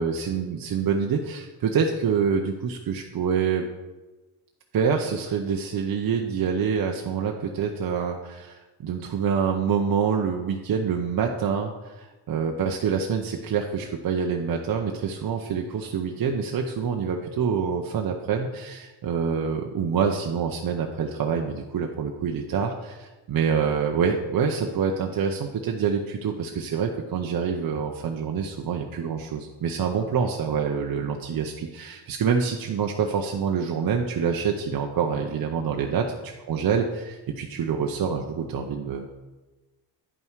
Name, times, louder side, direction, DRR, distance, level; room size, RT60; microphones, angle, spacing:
voice 1, 0.0-3.7 4.7-36.1 36.5-39.1, right 6 dB, 45° right, 2 dB, 0.8 m, -26 dB
9.7 x 5.5 x 4.6 m, 1.2 s
supercardioid pair, 70°, 49 cm